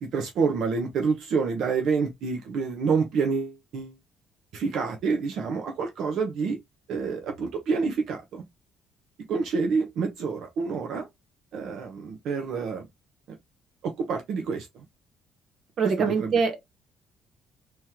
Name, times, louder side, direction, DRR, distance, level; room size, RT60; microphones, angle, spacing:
voice 1, 0.0-4.0 4.5-6.6 6.9-8.4 9.3-11.1 11.5-12.9 13.3-13.4 13.8-14.8 15.8-16.4, right 5 dB, 65° right, 0.9 m, -28 dB
voice 2, 15.8-16.6, right 5 dB, 45° right, 1.2 m, -23 dB
3.6 x 3.1 x 2.9 m
cardioid pair, 140°, 0 cm